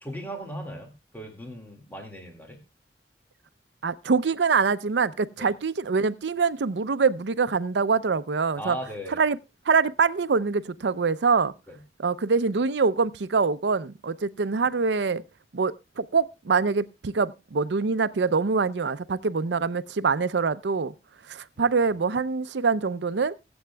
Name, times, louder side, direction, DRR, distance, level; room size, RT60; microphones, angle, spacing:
voice 1, 0.0-2.6 5.4-5.5 8.6-9.2 11.7-11.8 21.6-21.7, equal, 10° left, 2.0 m, -38 dB
voice 2, 3.8-8.8 9.1-9.4 9.7-11.5 12.0-15.2 15.5-20.9 21.3-23.3, right 5 dB, 85° right, 0.6 m, -24 dB
23.0 x 7.9 x 2.2 m
head